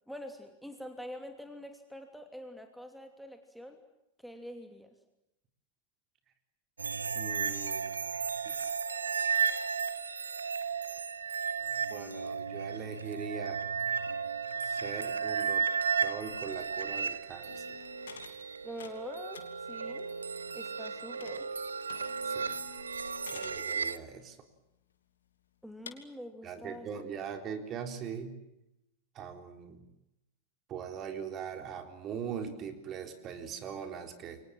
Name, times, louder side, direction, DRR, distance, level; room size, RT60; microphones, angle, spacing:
voice 1, 0.1-3.8 4.2-4.9 18.6-20.1 20.5-21.5 25.6-26.9, equal, ahead, 6 dB, 2.9 m, -45 dB
sound 1, 6.8-24.0, right 6 dB, 75° right, 1.1 m, -34 dB
voice 2, 7.1-7.9 11.9-13.6 14.6-15.7 16.0-17.6 22.2-22.6 23.3-24.4 26.4-28.4 29.1-29.8 30.7-34.4, right 7 dB, 30° right, 7 dB, 3.9 m, -41 dB
sound 2, 17.5-18.4 18.6-21.6 21.9-23.6 24.2-24.3 24.9-25.0 25.9-26.0, left 7 dB, 65° left, 3.0 m, -51 dB
29.0 x 24.0 x 7.6 m, 0.88 s
figure-of-eight pair, 90°, 0 cm